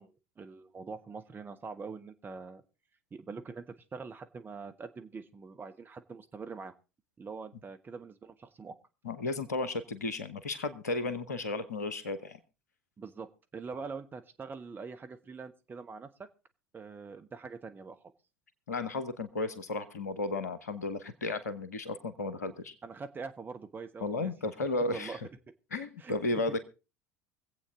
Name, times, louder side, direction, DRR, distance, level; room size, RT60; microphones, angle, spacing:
voice 1, 0.0-2.6 3.1-6.7 7.2-8.8 13.0-16.3 16.7-18.1 22.8-24.3 24.9-25.2 26.0-26.1, right 5 dB, 25° right, 8 dB, 1.2 m, -44 dB
voice 2, 9.0-12.4 18.7-22.7 24.0-25.2 25.7-26.6, left 2 dB, 80° left, 13 dB, 1.2 m, -34 dB
24.0 x 8.3 x 3.7 m, 0.31 s
figure-of-eight pair, 70°, 9 cm